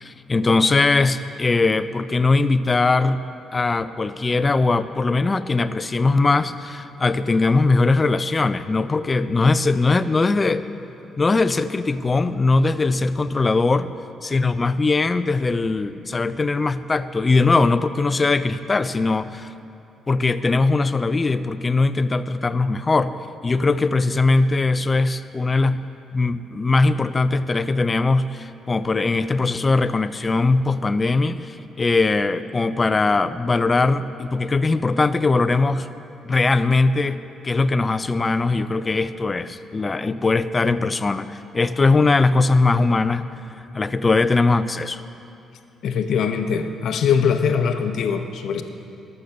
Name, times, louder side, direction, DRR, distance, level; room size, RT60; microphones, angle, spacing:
voice 1, 0.0-3.2 3.5-10.7 11.2-13.9 14.2-19.5 20.1-23.2 23.4-25.8 26.1-35.9 36.3-43.3 43.7-45.0, left 3 dB, 30° left, 14 dB, 0.4 m, -20 dB
voice 2, 45.8-48.6, left 6 dB, 70° left, 8 dB, 0.7 m, -22 dB
13.0 x 6.6 x 5.8 m, 2.7 s
cardioid pair, 90°, 0 cm